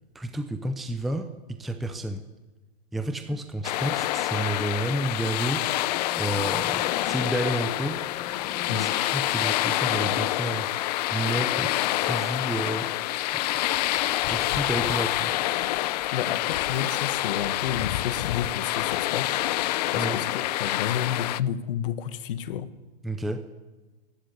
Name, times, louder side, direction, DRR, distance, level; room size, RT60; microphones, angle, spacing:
voice 1, 0.1-1.3 1.6-2.2 2.9-5.7 6.2-8.0 8.7-10.7 11.1-12.9 13.3-13.4 14.3-15.3 19.9-20.2 23.0-23.5, right 1 dB, ahead, 0.6 m, -30 dB
sound 1, 3.3-3.5 3.9-4.4 5.1-5.5 5.9-9.0, left 10 dB, 25° left, 0.9 m, -40 dB
sound 2, 3.6-21.4, left 16 dB, 40° left, 0.6 m, -27 dB
voice 2, 16.1-19.4 19.9-22.7, left 9 dB, 55° left, 1.7 m, -31 dB
28.5 x 12.0 x 8.2 m
hypercardioid pair, 155°, 32 cm